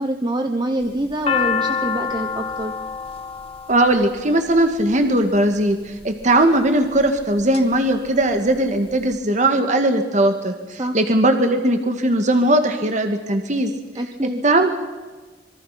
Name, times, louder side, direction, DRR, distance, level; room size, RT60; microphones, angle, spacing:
voice 1, 0.0-2.7 10.7-11.0 13.9-14.4, right 1 dB, 25° right, 6 dB, 1.2 m, -25 dB
sound 1, 0.8-5.1 5.9-6.4 7.0-7.6 8.0-8.1 8.2-9.1, left 6 dB, 30° left, 1.6 m, -26 dB
voice 2, 3.7-13.7 14.4-14.7, right 1 dB, 40° right, 6 dB, 2.0 m, -19 dB
26.5 x 23.0 x 5.9 m, 1.3 s
head